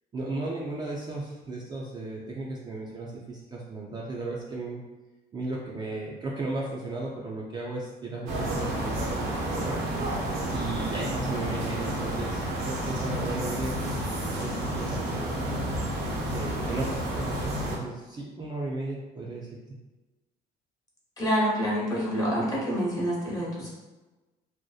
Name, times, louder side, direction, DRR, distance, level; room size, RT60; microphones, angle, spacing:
voice 1, 0.1-4.8 5.3-9.8 10.1-14.0 14.3-15.7 16.3-19.5, right 2 dB, 25° right, -4 dB, 0.3 m, -35 dB
sound 1, 8.3-17.8, right 1 dB, 80° right, 0.6 m, -30 dB
voice 2, 21.2-23.7, equal, 20° left, -5 dB, 0.8 m, -27 dB
2.6 x 2.1 x 2.3 m, 1.2 s
cardioid pair, 110°, 17 cm